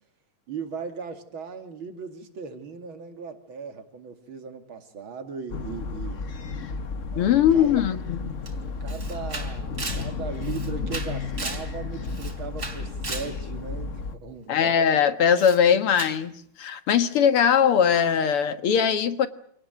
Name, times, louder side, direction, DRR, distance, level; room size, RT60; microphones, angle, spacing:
voice 1, 0.5-6.3 7.1-7.7 8.8-14.7, right 5 dB, 65° right, 7 dB, 3.1 m, -38 dB
sound 1, 5.5-14.2, left 4 dB, 40° left, 1.4 m, -33 dB
voice 2, 7.2-8.4 14.5-19.3, left 8 dB, 85° left, 10 dB, 2.4 m, -21 dB
Camera, 8.5-8.6 8.9-11.7 12.0-13.3 15.3-15.6 15.9-16.2, right 3 dB, 45° right, 4.0 m, -36 dB
28.0 x 18.5 x 9.1 m, 0.67 s
omnidirectional pair, 2.4 m